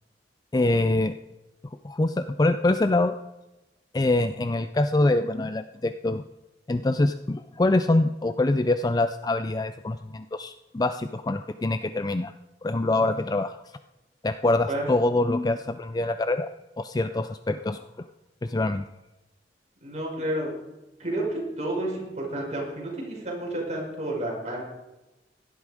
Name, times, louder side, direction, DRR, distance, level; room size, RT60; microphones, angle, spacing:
voice 1, 0.5-1.2 1.8-3.1 3.9-6.2 6.7-12.3 12.6-13.5 14.2-17.8 18.4-18.8, left 2 dB, 20° left, 10 dB, 0.4 m, -24 dB
voice 2, 19.8-20.5 21.0-24.6, right 1 dB, 40° right, -2 dB, 5.5 m, -30 dB
17.0 x 12.0 x 5.0 m, 1.0 s
head